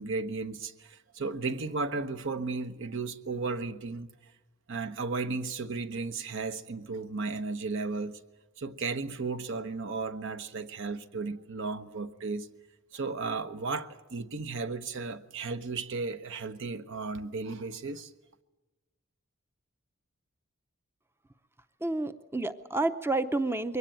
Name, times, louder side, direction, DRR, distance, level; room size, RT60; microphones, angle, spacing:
voice 1, 0.0-4.1 4.7-8.2 8.6-12.5 12.9-18.1, right 4 dB, 65° right, 1.0 m, -34 dB
voice 2, 21.8-23.8, right 2 dB, 10° right, 0.6 m, -29 dB
22.5 x 18.0 x 9.0 m
head